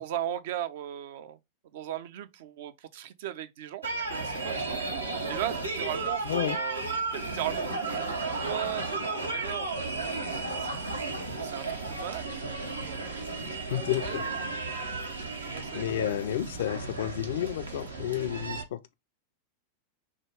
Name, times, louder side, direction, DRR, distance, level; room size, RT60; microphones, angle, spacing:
voice 1, 0.0-1.4 1.7-4.8 5.3-10.7 11.4-12.5 12.8-13.1 13.7-14.4 15.5-16.3, right 11 dB, 55° right, 0.5 m, -38 dB
sound 1, 3.8-18.6, right 3 dB, 80° right, 0.9 m, -34 dB
voice 2, 6.3-6.6 13.7-14.2 15.7-18.8, left 12 dB, 60° left, 0.4 m, -31 dB
6.2 x 2.4 x 3.4 m
figure-of-eight pair, 90°, 0 cm